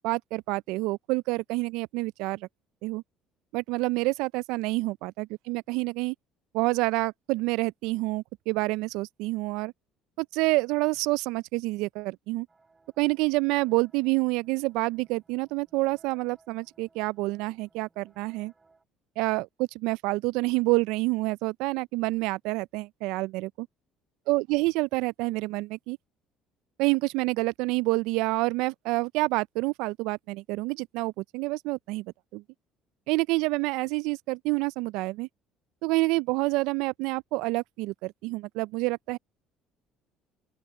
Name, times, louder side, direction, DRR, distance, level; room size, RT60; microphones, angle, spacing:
voice 1, 0.0-2.5 2.8-3.0 3.5-6.1 6.5-9.7 10.2-12.5 13.0-18.5 19.2-23.7 24.3-26.0 26.8-32.1 32.3-32.4 33.1-35.3 35.8-39.2, right 23 dB, 80° right, 0.3 m, -28 dB
sound 1, 12.5-18.8, right 3 dB, 25° right, 7.5 m, -64 dB
open air
supercardioid pair, 85°, 0 cm